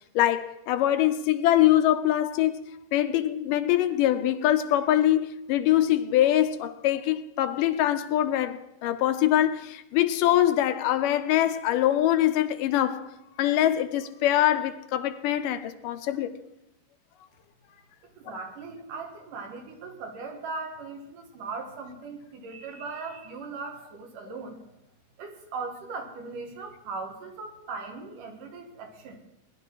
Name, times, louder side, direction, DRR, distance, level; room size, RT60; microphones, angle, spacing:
voice 1, 0.2-2.6 2.9-13.0 13.4-16.3, left 12 dB, 85° left, 2.3 m, -23 dB
voice 2, 18.0-24.6 25.2-29.2, right 4 dB, 75° right, 3.3 m, -39 dB
20.0 x 11.0 x 4.8 m
omnidirectional pair, 3.8 m